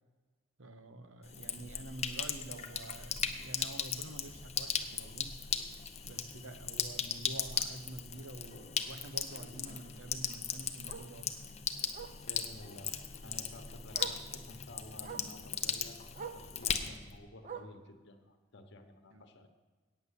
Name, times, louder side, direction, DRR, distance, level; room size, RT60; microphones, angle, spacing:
voice 1, 0.6-5.7 6.0-11.5 19.1-19.5, right 2 dB, 75° right, 8 dB, 1.0 m, -48 dB
Sink (filling or washing), 1.2-17.2, left 7 dB, 35° left, 0.8 m, -38 dB
Bark, 4.4-4.6 5.0-5.1 5.5-5.6 5.8-5.9 7.4-7.5 10.0-10.1 10.9-11.1 11.9-12.2 13.4-13.5 13.9-14.3 15.0-15.3 16.1-16.5 17.4-17.9 18.8-18.9, right 6 dB, 40° right, 0.7 m, -45 dB
voice 2, 12.2-13.0 13.2-19.5, left 2 dB, 65° left, 7 dB, 1.2 m, -52 dB
8.8 x 6.9 x 8.4 m, 1.4 s
head